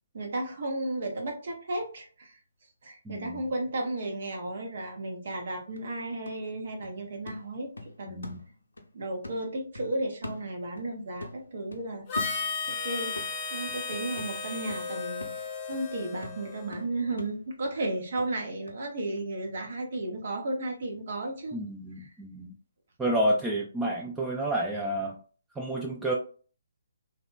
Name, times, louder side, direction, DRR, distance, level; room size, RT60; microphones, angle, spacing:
voice 1, 0.1-2.4 2.8-8.3 8.9-12.1 12.7-21.6 22.0-22.1, right 2 dB, 55° right, 1 dB, 0.6 m, -34 dB
voice 2, 3.1-3.4 8.1-8.4 21.5-22.5 23.0-25.2 25.6-26.1, right 1 dB, 10° right, -3 dB, 0.3 m, -30 dB
sound 1, 5.8-8.9 9.2-10.9 11.2-12.8 13.2-18.8 19.2-19.3, left 2 dB, 85° left, 0.5 m, -44 dB
Harmonica, 12.1-16.8, left 4 dB, 30° left, 0.6 m, -34 dB
2.8 x 2.1 x 2.2 m, 0.39 s
figure-of-eight pair, 140°, 0 cm